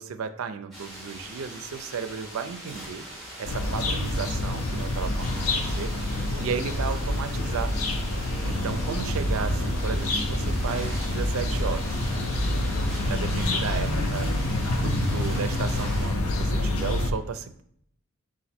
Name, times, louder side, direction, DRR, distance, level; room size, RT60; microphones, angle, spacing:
voice 1, 0.0-3.1 3.4-7.7 8.4-12.0 13.1-14.4 14.7-17.6, right 6 dB, 80° right, 10 dB, 0.4 m, -34 dB
sound 1, 0.7-16.1, right 1 dB, ahead, 1.4 m, -41 dB
sound 2, 3.5-17.1, left 1 dB, 90° left, 0.6 m, -27 dB
4.1 x 2.5 x 4.2 m, 0.67 s
head